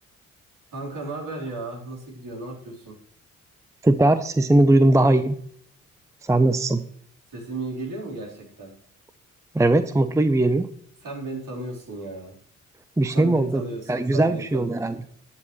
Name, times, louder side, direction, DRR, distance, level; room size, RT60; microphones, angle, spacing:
voice 1, 0.7-3.0 7.3-8.7 11.0-12.3 13.1-15.0, right 2 dB, 55° right, -3 dB, 4.0 m, -35 dB
voice 2, 3.8-5.4 6.2-6.8 9.5-10.7 13.0-15.0, right 2 dB, 10° right, 12 dB, 0.7 m, -19 dB
13.5 x 9.2 x 3.2 m, 0.64 s
hypercardioid pair, 40°, 38 cm